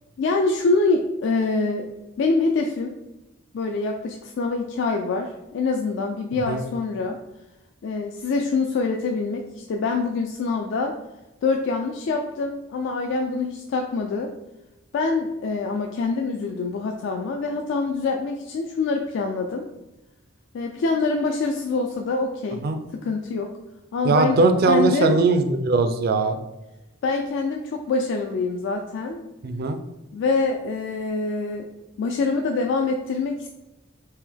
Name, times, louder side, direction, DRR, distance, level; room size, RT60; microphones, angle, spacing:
voice 1, 0.2-1.9 2.2-2.9 3.5-7.2 7.8-11.0 11.4-14.3 14.9-19.6 20.5-22.6 22.9-23.5 23.9-24.4 24.7-25.2 27.0-29.3 30.1-31.7 32.0-33.5, left 3 dB, 65° left, 2 dB, 0.3 m, -25 dB
voice 2, 24.0-26.4 29.4-29.8, right 3 dB, 50° right, 8 dB, 0.4 m, -20 dB
3.5 x 2.8 x 3.5 m, 0.99 s
head